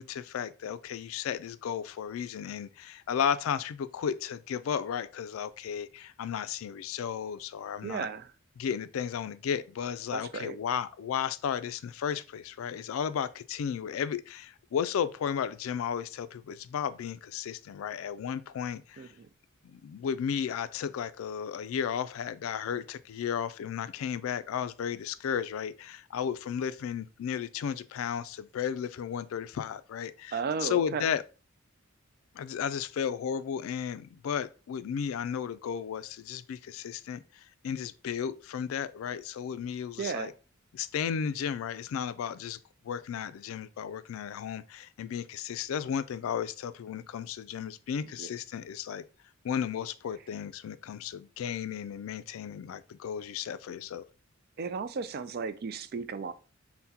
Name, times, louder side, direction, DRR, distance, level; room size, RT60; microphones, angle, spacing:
voice 1, 0.0-8.1 8.6-19.1 19.6-31.2 32.3-40.3 40.7-42.6 42.8-49.0 49.4-54.0, left 8 dB, 80° left, 0.3 m, -34 dB
voice 2, 7.8-8.3 10.1-10.5 19.0-19.3 30.3-31.1 40.0-40.3 48.2-48.3 54.6-56.3, right 5 dB, 50° right, 0.3 m, -34 dB
5.7 x 2.1 x 2.7 m
head